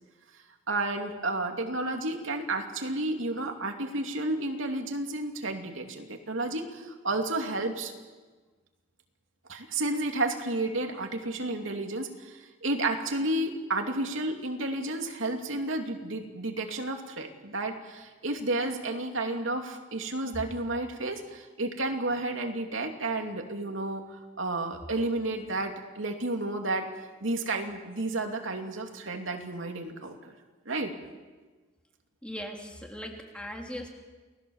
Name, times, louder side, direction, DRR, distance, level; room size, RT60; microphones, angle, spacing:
voice 1, 0.7-7.9 9.5-26.9 27.2-30.3 30.7-30.9, right 2 dB, 80° right, 3 dB, 2.8 m, -31 dB
voice 2, 32.2-33.9, equal, 5° left, 1 dB, 3.2 m, -39 dB
29.5 x 19.5 x 7.3 m, 1.3 s
head